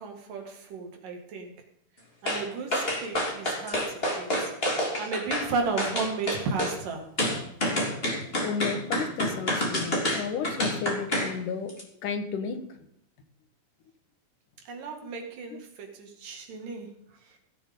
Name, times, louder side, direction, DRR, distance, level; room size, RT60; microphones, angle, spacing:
voice 1, 0.0-1.5 2.2-4.5 5.0-7.2 14.7-16.9 17.2-17.4, right 4 dB, 65° right, 3 dB, 3.6 m, -34 dB
sound 1, 2.3-2.4 2.7-5.5 5.8-6.8 7.2-11.3 11.7-11.8, equal, 15° left, 2.5 m, -28 dB
voice 2, 8.4-12.9 15.5-15.6, left 5 dB, 65° left, 6 dB, 2.8 m, -33 dB
17.0 x 7.0 x 5.3 m, 0.74 s
omnidirectional pair, 4.2 m